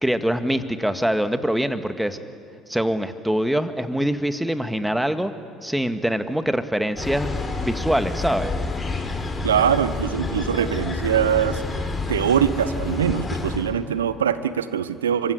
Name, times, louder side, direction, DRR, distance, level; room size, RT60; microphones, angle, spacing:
voice 1, 0.0-2.2 2.7-5.3 5.6-8.5, equal, 5° right, 9 dB, 2.0 m, -24 dB
sound 1, 6.9-13.7, left 3 dB, 25° left, 4.8 m, -28 dB
voice 2, 9.4-11.6 12.1-15.3, right 8 dB, 85° right, 14 dB, 1.0 m, -22 dB
24.5 x 24.5 x 10.0 m, 2.3 s
hypercardioid pair, 60°, 0 cm